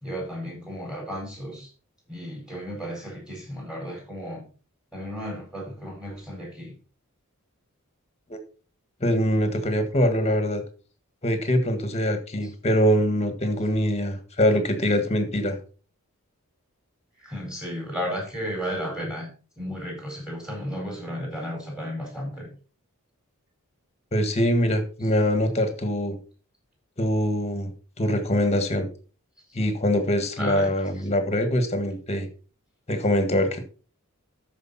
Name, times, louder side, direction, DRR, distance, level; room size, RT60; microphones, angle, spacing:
voice 1, 0.0-1.7 2.1-4.5 4.9-6.7 12.4-12.5 17.2-19.3 19.6-22.5 30.4-30.7 31.0-31.1, equal, 5° right, 0 dB, 4.5 m, -34 dB
voice 2, 9.0-10.6 11.2-15.6 24.1-26.2 27.0-27.7 28.0-28.9 29.5-32.3 32.9-33.6, equal, 30° left, 8 dB, 1.6 m, -23 dB
13.0 x 5.3 x 4.1 m, 0.37 s
head